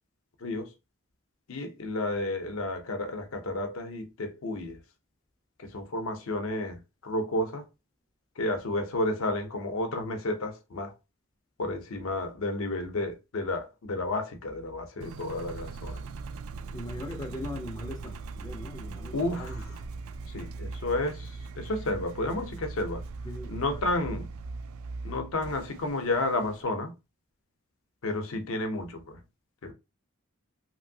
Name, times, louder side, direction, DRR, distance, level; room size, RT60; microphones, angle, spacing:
voice 1, 0.4-0.7 1.5-4.8 5.6-7.7 8.4-10.9 11.6-16.0 19.1-19.7 20.3-23.0 23.5-24.3 25.0-26.9 28.0-29.2 29.6-29.7, left 2 dB, 70° left, 0.6 m, -31 dB
Engine, 15.0-26.6, right 4 dB, 75° right, 0.3 m, -40 dB
voice 2, 16.7-19.6 23.2-23.8 24.1-24.2, left 1 dB, 20° left, 0.4 m, -40 dB
2.9 x 2.6 x 2.6 m
head